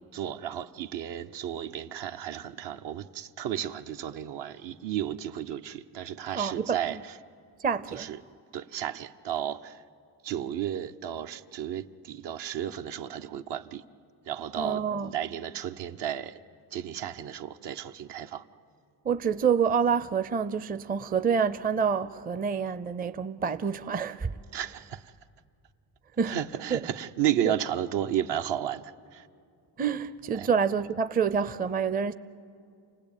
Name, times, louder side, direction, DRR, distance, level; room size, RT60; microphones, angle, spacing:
voice 1, 0.1-7.2 7.9-8.2 8.5-9.8 10.2-13.8 14.3-16.4 16.7-18.4 24.5-25.1 26.2-29.3 30.3-30.5, right 10 dB, 65° right, 1.0 m, -33 dB
voice 2, 6.3-6.8 7.6-8.1 14.6-15.1 19.0-24.3 26.2-26.4 26.7-26.8 27.4-27.5 29.8-32.1, right 6 dB, 20° right, 0.6 m, -27 dB
29.0 x 19.0 x 9.0 m
cardioid pair, 90°, 44 cm